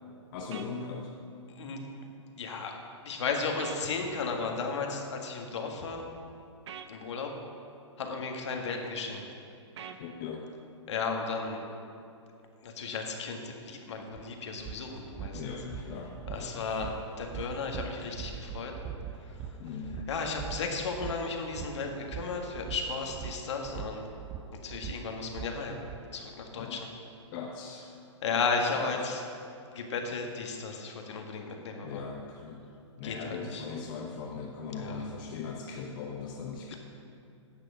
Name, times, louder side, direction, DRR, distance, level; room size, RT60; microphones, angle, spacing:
voice 1, 0.3-1.1 10.0-10.5 15.3-16.8 19.6-20.1 26.6-26.8 27.3-27.9 28.9-29.1 31.8-32.7 33.0-36.7, left 5 dB, 45° left, 0 dB, 1.0 m, -39 dB
sound 1, 0.5-0.7 3.6-3.8 6.7-6.9 9.8-10.0, right 8 dB, 65° right, 0.9 m, -42 dB
voice 2, 2.4-2.7 3.0-6.0 6.9-7.3 8.0-9.3 10.9-11.7 12.6-15.4 16.3-18.7 19.2-19.5 20.1-24.1 24.6-25.8 26.1-26.9 28.2-29.2 29.7-32.1 33.0-33.7 34.8-35.1 36.7-36.8, left 4 dB, 65° left, 2 dB, 1.8 m, -34 dB
sound 2, 14.1-14.2 14.6-26.0, right 8 dB, 25° right, 0.6 m, -42 dB
10.5 x 7.6 x 6.3 m, 2.5 s
hypercardioid pair, 120°, 16 cm